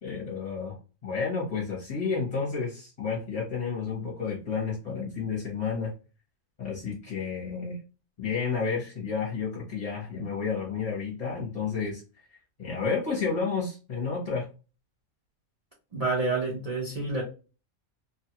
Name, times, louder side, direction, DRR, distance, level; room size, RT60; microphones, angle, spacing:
voice 1, 0.0-5.9 6.6-7.8 8.2-12.0 12.3-14.5, left 5 dB, 30° left, -5 dB, 0.8 m, -31 dB
voice 2, 15.9-17.2, right 3 dB, 35° right, -3 dB, 0.7 m, -28 dB
2.8 x 2.3 x 2.8 m, 0.33 s
omnidirectional pair, 1.5 m